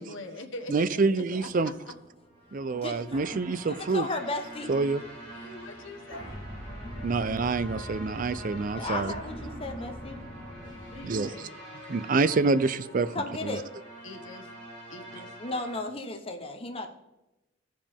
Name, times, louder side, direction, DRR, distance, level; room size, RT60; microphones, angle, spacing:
voice 1, 0.0-1.9 5.3-6.4 10.9-11.6 14.0-14.5 14.9-15.3, left 2 dB, 80° left, 5 dB, 1.1 m, -43 dB
voice 2, 0.7-1.7 2.5-4.1 4.7-5.0 7.0-9.1 11.0-11.5 11.9-13.2 13.4-13.6, right 3 dB, 45° right, 15 dB, 0.4 m, -27 dB
sound 1, 1.4-11.1, equal, 25° right, 1.4 m, -43 dB
sound 2, 2.3-15.8, right 1 dB, 5° left, 3.6 m, -46 dB
voice 3, 2.7-4.7 8.8-10.2 13.1-13.6 15.4-16.9, left 2 dB, 30° left, 4 dB, 1.0 m, -35 dB
15.0 x 5.1 x 3.6 m, 0.96 s
head